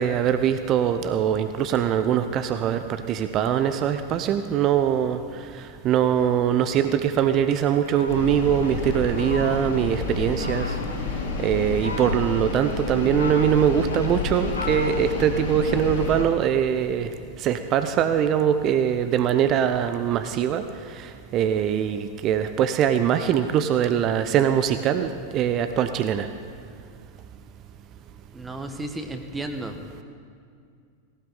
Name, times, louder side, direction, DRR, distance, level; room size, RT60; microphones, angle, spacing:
voice 1, 0.0-10.8 11.4-17.1 17.4-26.3, right 9 dB, 35° right, 9 dB, 0.7 m, -22 dB
Fowl, 7.8-9.9 10.4-11.0 11.6-12.5 13.0-15.8, left 3 dB, 80° left, 1.0 m, -37 dB
sound 1, 8.1-16.2, left 4 dB, 60° left, 4.7 m, -30 dB
voice 2, 28.3-29.8, right 2 dB, 10° right, 5 dB, 1.2 m, -33 dB
18.0 x 18.0 x 3.9 m, 2.3 s
figure-of-eight pair, 90°, 0 cm